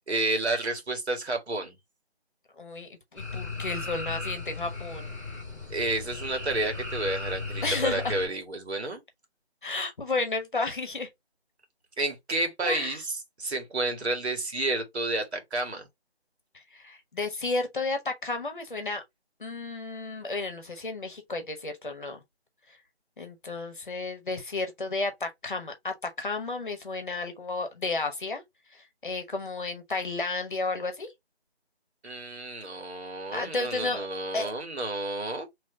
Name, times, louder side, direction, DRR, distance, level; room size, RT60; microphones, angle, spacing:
voice 1, 0.1-1.7 5.7-9.0 12.0-15.9 32.0-35.5, right 2 dB, 75° right, 1.6 m, -30 dB
voice 2, 2.6-5.1 7.6-8.1 9.6-11.1 12.6-13.0 16.7-19.0 19.4-22.2 23.2-28.4 28.7-31.1 33.3-34.0 34.3-34.5, left 3 dB, 50° left, 1.1 m, -32 dB
sound 1, 3.2-8.3, left 3 dB, 15° right, 0.8 m, -36 dB
3.1 x 2.9 x 3.5 m
figure-of-eight pair, 180°, 32 cm